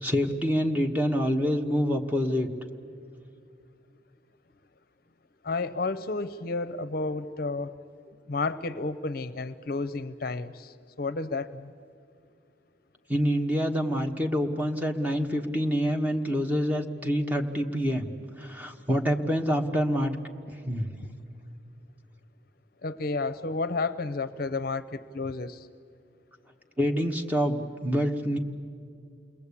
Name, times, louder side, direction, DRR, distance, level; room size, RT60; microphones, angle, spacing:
voice 1, 0.0-2.5 13.1-18.1 18.4-20.1 20.5-20.9 26.8-28.4, equal, 10° right, 3 dB, 1.3 m, -26 dB
voice 2, 5.4-7.7 8.3-11.7 22.8-25.7, left 3 dB, 55° left, 13 dB, 0.6 m, -31 dB
28.5 x 21.0 x 8.5 m, 2.4 s
head